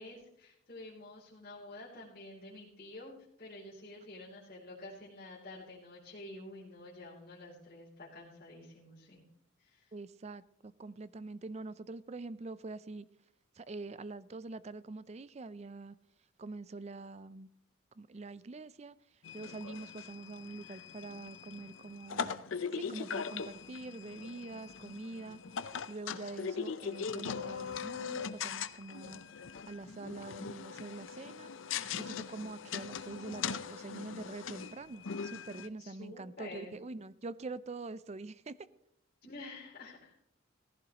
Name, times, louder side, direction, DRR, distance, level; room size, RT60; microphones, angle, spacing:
voice 1, 0.0-9.2 9.6-9.9 35.8-36.8 39.2-40.1, left 2 dB, 45° left, 3.0 m, -49 dB
voice 2, 9.9-13.1 13.6-15.9 16.4-17.5 18.0-19.0 19.3-22.4 22.7-29.2 29.7-31.5 32.0-38.7, right 3 dB, 30° right, 0.4 m, -45 dB
sound 1, 19.2-35.7, left 6 dB, 70° left, 0.6 m, -41 dB
16.5 x 15.0 x 2.9 m
head